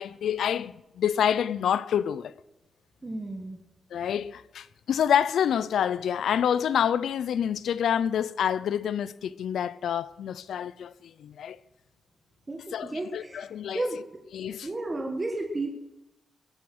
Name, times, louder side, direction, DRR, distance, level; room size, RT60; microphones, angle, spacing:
voice 1, 0.0-2.3 3.9-11.6 12.7-13.9 14.3-14.7, left 9 dB, 80° left, 0.5 m, -27 dB
voice 2, 3.0-3.6 12.5-13.4 13.7-14.0 14.6-15.7, right 2 dB, 20° right, 1.5 m, -32 dB
21.0 x 8.6 x 6.2 m
wide cardioid pair, 150°, 0 cm